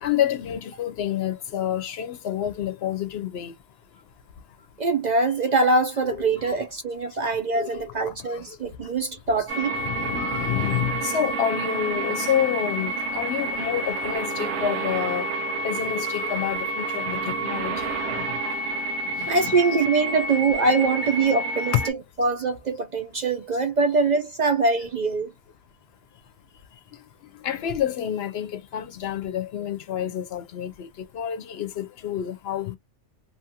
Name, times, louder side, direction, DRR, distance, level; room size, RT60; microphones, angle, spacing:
voice 1, 0.0-3.5 6.2-6.5 7.6-7.8 8.3-8.4 9.7-15.3 15.6-18.8 19.2-19.6 27.4-32.8, left 10 dB, 70° left, 0.8 m, -29 dB
voice 2, 4.8-9.7 19.3-25.3, right 3 dB, 50° right, 0.6 m, -23 dB
sound 1, 9.5-21.9, right 2 dB, 85° right, 1.0 m, -29 dB
2.8 x 2.4 x 2.8 m
omnidirectional pair, 1.2 m